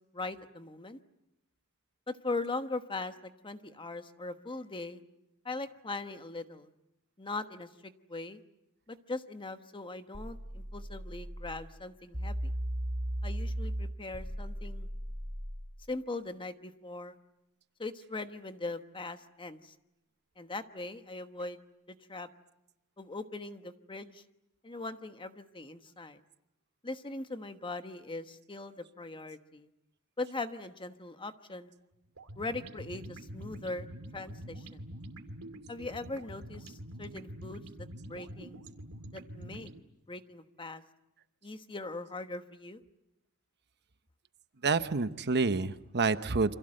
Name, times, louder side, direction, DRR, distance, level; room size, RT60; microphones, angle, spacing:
voice 1, 0.1-1.0 2.1-5.0 5.4-6.7 7.2-8.4 8.9-12.5 13.2-14.9 15.9-17.2 17.8-19.7 20.4-21.6 21.9-22.3 23.0-24.2 24.6-26.2 26.8-29.7 30.2-31.7 32.4-33.9 34.1-34.9 35.7-38.6 39.1-39.7 40.1-40.8 41.4-42.8, left 2 dB, 20° left, 9 dB, 1.2 m, -40 dB
sound 1, 10.1-11.6 12.1-15.6, right 1 dB, 25° right, 5.8 m, -36 dB
sound 2, 32.2-39.8, right 1 dB, 90° right, 2.4 m, -46 dB
voice 2, 44.6-46.5, right 4 dB, 50° right, 11 dB, 1.0 m, -28 dB
29.0 x 25.5 x 7.8 m, 0.89 s
head